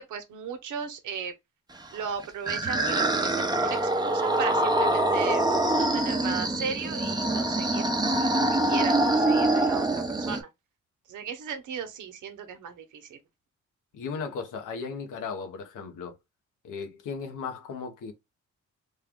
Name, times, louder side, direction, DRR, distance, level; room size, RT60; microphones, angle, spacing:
voice 1, 0.0-1.3 1.9-5.4 5.7-7.9 8.2-10.5 11.1-13.2, right 6 dB, 85° right, 0.9 m, -36 dB
sound 1, 1.9-10.4, right 1 dB, 15° right, 0.8 m, -25 dB
voice 2, 13.9-16.2 16.6-18.1, left 5 dB, 90° left, 1.0 m, -36 dB
3.3 x 2.3 x 3.5 m
cardioid pair, 85°, 30 cm